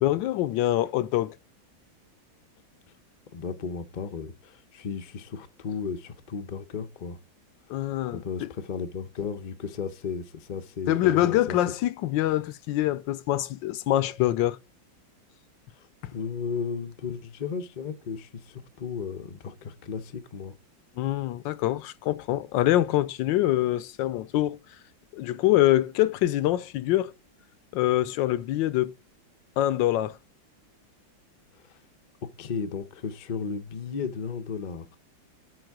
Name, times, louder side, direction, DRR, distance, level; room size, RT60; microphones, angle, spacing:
voice 1, 0.0-1.3 7.7-8.5 10.9-14.6 21.0-24.6 25.1-27.1 27.7-29.0 29.6-30.2, left 14 dB, 80° left, 1.3 m, -25 dB
voice 2, 3.3-7.2 8.1-11.6 15.7-15.9 16.1-20.5 31.6-31.8 32.2-35.0, left 5 dB, 55° left, 0.5 m, -34 dB
7.8 x 4.8 x 4.6 m
omnidirectional pair, 2.1 m